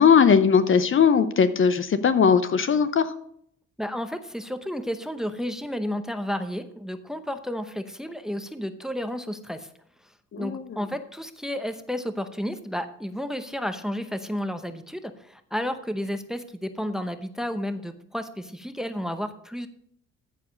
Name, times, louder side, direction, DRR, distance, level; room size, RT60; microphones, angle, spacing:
voice 1, 0.0-3.1 10.3-10.6, left 6 dB, 40° left, 12 dB, 0.7 m, -19 dB
voice 2, 3.8-9.7 10.4-19.7, equal, ahead, 9 dB, 0.8 m, -32 dB
14.0 x 4.9 x 5.1 m, 0.68 s
cardioid pair, 90°, 30 cm